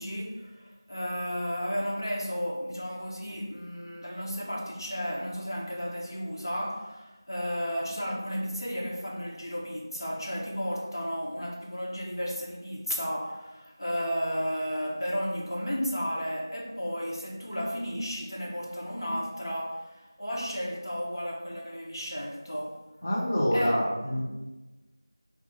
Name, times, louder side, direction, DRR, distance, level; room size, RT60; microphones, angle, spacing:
voice 1, 0.0-22.8 23.5-24.2, equal, 65° left, -2 dB, 1.1 m, -33 dB
voice 2, 23.0-24.2, equal, 20° left, -10 dB, 0.7 m, -26 dB
4.8 x 2.3 x 4.1 m, 1.1 s
figure-of-eight pair, 180°, 2 cm